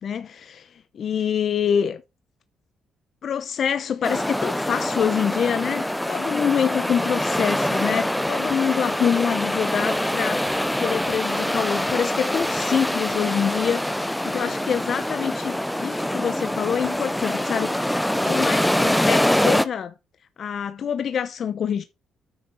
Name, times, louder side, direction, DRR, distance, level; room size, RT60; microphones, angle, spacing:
voice 1, 0.0-2.0 3.2-19.9 20.4-21.8, left 8 dB, 55° left, 0.9 m, -26 dB
sound 1, 4.0-19.7, left 1 dB, 5° left, 0.8 m, -24 dB
9.3 x 6.5 x 4.4 m
cardioid pair, 90°, 0 cm